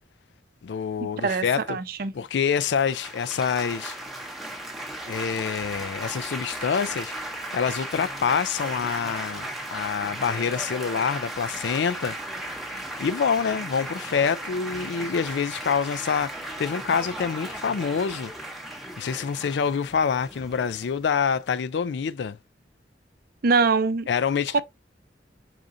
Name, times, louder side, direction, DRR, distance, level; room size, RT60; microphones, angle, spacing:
voice 1, 0.6-1.8 2.1-4.0 5.1-7.1 7.5-12.2 13.0-18.3 19.0-22.4 24.1-24.6, left 6 dB, 75° left, 0.4 m, -26 dB
voice 2, 1.2-2.1 23.4-24.1 24.5-24.6, right 4 dB, 55° right, 0.6 m, -23 dB
Laughter / Applause / Chatter, 2.5-21.6, right 1 dB, ahead, 0.8 m, -36 dB
5.0 x 3.7 x 2.6 m
head